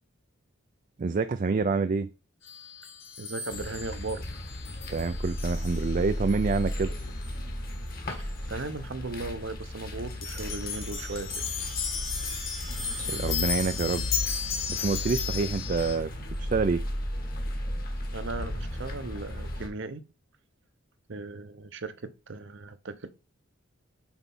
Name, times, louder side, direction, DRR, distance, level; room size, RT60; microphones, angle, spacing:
voice 1, 1.0-2.1 4.9-6.9 13.1-14.0 14.7-16.1 16.4-16.8, right 4 dB, 40° right, 0.4 m, -27 dB
sound 1, 2.4-7.3 7.7-7.8 8.3-8.4 10.1-16.0, left 6 dB, 70° left, 2.5 m, -35 dB
voice 2, 3.2-4.3 8.1-11.4 18.1-20.0 21.1-23.1, right 3 dB, 60° right, 0.7 m, -37 dB
sound 2, 3.5-19.7, left 1 dB, 45° left, 1.6 m, -35 dB
6.1 x 4.4 x 5.4 m
head